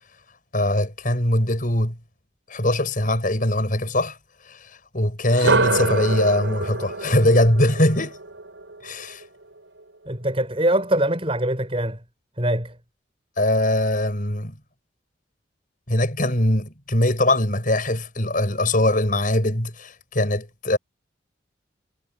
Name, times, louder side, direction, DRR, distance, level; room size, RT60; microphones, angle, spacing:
voice 1, 0.5-2.0 2.5-4.2 4.5-8.2 8.8-9.2 13.4-14.5 15.9-20.8, left 1 dB, 45° left, 6.4 m, -21 dB
sound 1, 5.3-9.2, right 3 dB, 80° right, 4.7 m, -26 dB
voice 2, 10.1-12.0 12.4-12.7, right 1 dB, 30° right, 7.1 m, -23 dB
head